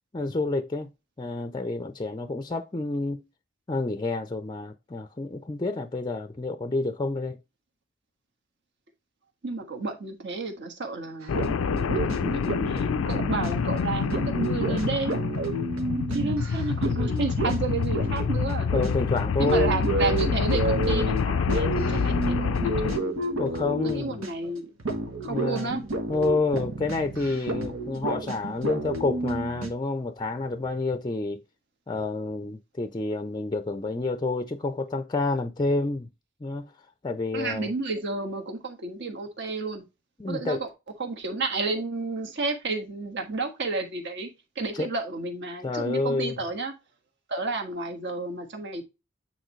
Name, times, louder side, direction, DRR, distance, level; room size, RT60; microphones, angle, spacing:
voice 1, 0.1-0.9 1.2-3.2 3.7-7.4 18.7-19.7 23.4-24.2 25.3-25.8 26.1-31.4 31.9-36.1 36.4-36.7 37.0-37.7 40.2-40.6 44.7-44.9 45.6-46.4, left 3 dB, 20° left, 0.5 m, -29 dB
voice 2, 9.4-15.2 15.9-18.7 19.4-23.1 23.8-24.7 25.2-25.8 37.3-39.8 40.3-40.7 41.0-44.3 44.5-46.7 47.3-48.8, right 3 dB, 60° right, 1.5 m, -31 dB
sound 1, 11.2-24.5 24.8-29.7, right 2 dB, 85° right, 1.5 m, -31 dB
sound 2, 11.3-23.0, left 6 dB, 80° left, 0.4 m, -27 dB
9.0 x 4.2 x 3.1 m
head